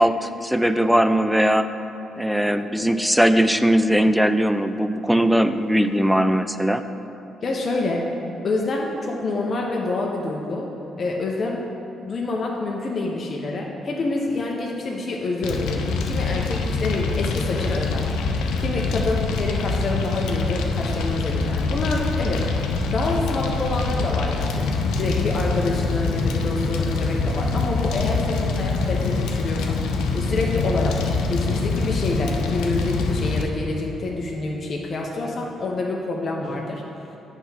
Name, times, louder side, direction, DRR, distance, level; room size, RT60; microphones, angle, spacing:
voice 1, 0.0-1.7 2.2-6.8, equal, ahead, 10 dB, 0.3 m, -19 dB
voice 2, 7.4-8.1 8.4-10.7 11.0-11.6 12.0-18.1 18.6-22.5 22.9-29.8 30.1-36.8 37.1-37.2, left 2 dB, 45° left, -1 dB, 0.7 m, -27 dB
Fire, 15.4-33.4, left 4 dB, 90° left, 0.5 m, -24 dB
8.4 x 3.5 x 5.7 m, 2.9 s
cardioid pair, 90°, 0 cm